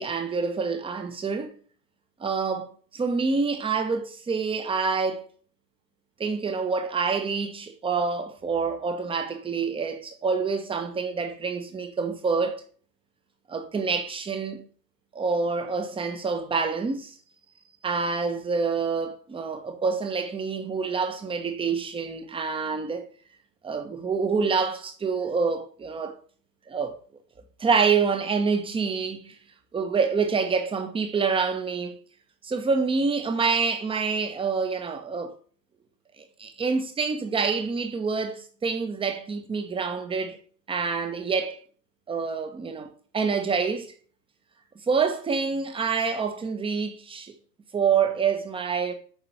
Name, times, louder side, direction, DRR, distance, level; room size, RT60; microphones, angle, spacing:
voice 1, 0.0-1.5 2.2-5.3 6.2-12.6 13.5-14.6 15.1-17.2 17.8-23.1 23.6-26.2 26.7-26.9 27.6-29.4 29.7-32.0 32.4-35.3 36.2-40.4 40.7-41.6 42.1-42.9 43.1-43.9 44.9-47.3 47.7-48.9, right 5 dB, 10° right, 1.3 m, -27 dB
9.1 x 6.6 x 4.3 m
figure-of-eight pair, 100°, 50 cm